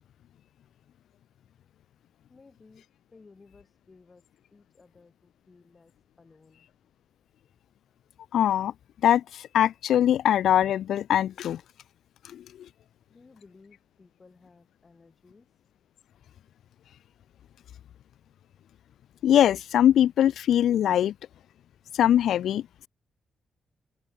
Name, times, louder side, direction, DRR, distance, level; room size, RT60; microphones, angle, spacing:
voice 1, 2.3-6.7 13.1-15.6, left 4 dB, 25° left, 6.4 m, -57 dB
voice 2, 8.3-8.7 9.0-11.6 12.3-12.4 19.2-21.1 21.9-22.6, left 10 dB, 85° left, 0.4 m, -22 dB
wide cardioid pair, 145°, 0 cm